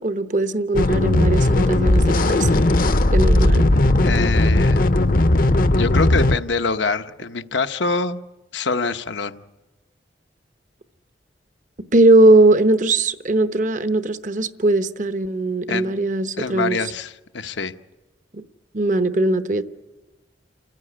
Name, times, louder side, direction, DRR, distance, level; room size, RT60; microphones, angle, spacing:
voice 1, 0.0-2.6 3.1-3.7 11.9-16.8 18.3-18.4 18.7-19.6, right 2 dB, 45° right, 0.9 m, -19 dB
sound 1, 0.7-6.4, left 1 dB, 50° left, 0.7 m, -17 dB
voice 2, 4.0-4.9 5.7-8.2 8.5-9.4 15.7-15.9 16.4-17.7, left 4 dB, 85° left, 1.0 m, -25 dB
29.5 x 15.5 x 9.8 m
head